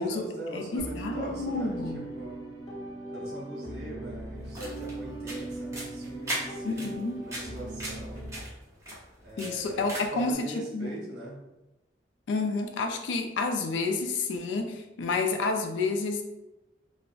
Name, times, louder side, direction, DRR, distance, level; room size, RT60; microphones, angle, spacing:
voice 1, 0.0-2.5 3.1-8.2 9.2-11.4, right 1 dB, 60° right, -3 dB, 0.9 m, -41 dB
voice 2, 0.5-2.0 6.6-7.2 9.4-10.5 10.7-11.0 12.3-16.2, left 3 dB, 80° left, 4 dB, 0.3 m, -30 dB
sound 1, 0.8-8.4, right 2 dB, 20° left, 0.8 m, -39 dB
sound 2, 4.4-10.3, right 1 dB, 15° right, 0.9 m, -39 dB
3.4 x 2.0 x 2.3 m, 0.98 s
head